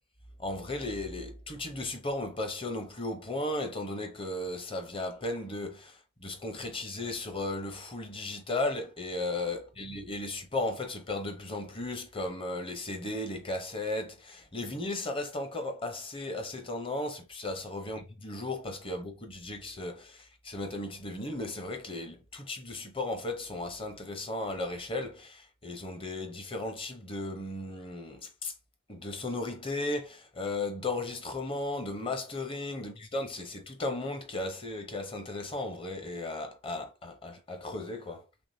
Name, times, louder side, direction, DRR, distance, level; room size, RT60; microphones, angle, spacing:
voice 1, 0.4-28.5 28.9-38.2, left 2 dB, 25° left, 0.7 m, -35 dB
3.5 x 3.3 x 2.7 m
head